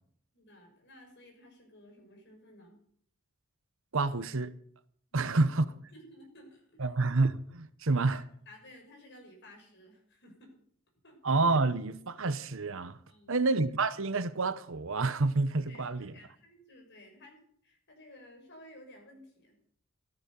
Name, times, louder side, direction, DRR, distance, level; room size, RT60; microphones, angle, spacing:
voice 1, 0.3-2.8 5.1-6.9 8.0-8.2 8.5-10.5 11.0-11.2 13.1-13.5 15.7-19.6, left 1 dB, 50° left, 6.4 m, -55 dB
voice 2, 3.9-4.5 5.1-5.7 6.8-8.2 11.2-13.0 13.3-16.1, right 3 dB, 60° right, 1.0 m, -28 dB
15.0 x 13.5 x 7.0 m
head